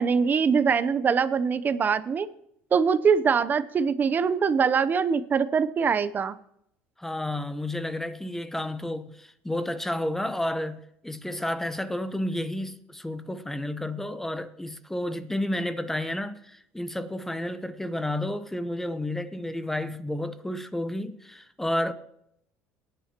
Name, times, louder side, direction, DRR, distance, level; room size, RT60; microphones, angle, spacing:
voice 1, 0.0-2.3 2.7-6.3, right 6 dB, 35° right, 0.7 m, -23 dB
voice 2, 7.0-10.8 11.0-21.9, left 1 dB, 5° left, 1.0 m, -31 dB
19.0 x 10.5 x 3.0 m
supercardioid pair, 95°, 5 cm